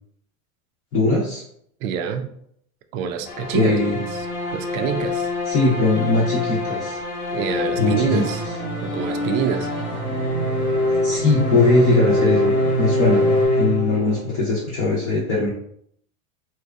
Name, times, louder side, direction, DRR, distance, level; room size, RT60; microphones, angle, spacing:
voice 1, 0.9-1.4 3.5-4.0 5.5-7.0 7.8-8.2 11.0-12.5 12.8-15.5, left 2 dB, 35° left, -6 dB, 0.6 m, -20 dB
voice 2, 1.8-2.3 2.9-3.8 4.5-5.3 7.3-8.4 8.8-9.7, right 8 dB, 70° right, 7 dB, 0.5 m, -25 dB
sound 1, 3.3-14.4, left 2 dB, 85° left, 1.1 m, -24 dB
sound 2, 7.9-13.5, right 3 dB, 5° right, 0.9 m, -32 dB
2.7 x 2.2 x 2.2 m, 0.70 s
supercardioid pair, 125°, 42 cm